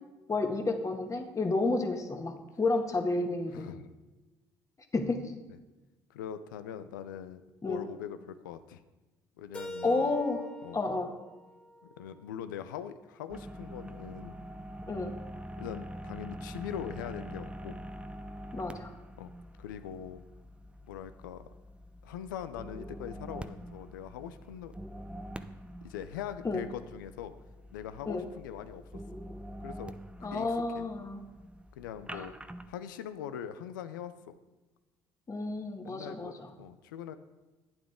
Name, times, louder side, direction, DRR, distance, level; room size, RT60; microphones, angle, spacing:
voice 1, 0.3-3.7 4.9-5.3 7.6-7.8 9.8-10.4 10.7-11.1 14.9-15.1 18.5-18.9 26.4-26.6 28.0-28.2 30.2-31.3 32.1-32.3 35.3-36.5, left 3 dB, 30° left, 4 dB, 1.7 m, -31 dB
voice 2, 3.5-3.9 6.1-8.8 9.4-10.1 10.6-10.8 12.0-14.3 15.6-17.8 19.2-19.3 19.6-20.2 20.8-21.5 22.0-24.7 25.8-27.3 27.7-29.0 29.6-29.9 30.2-30.8 31.7-32.3 32.7-34.3 35.8-36.3 36.6-37.2, left 9 dB, 90° left, 11 dB, 0.5 m, -42 dB
Keyboard (musical), 9.5-12.4, equal, 10° left, 2.2 m, -46 dB
sound 1, 13.3-32.7, equal, 10° right, 0.7 m, -45 dB
11.5 x 9.0 x 3.7 m, 1.1 s
hypercardioid pair, 55°, 10 cm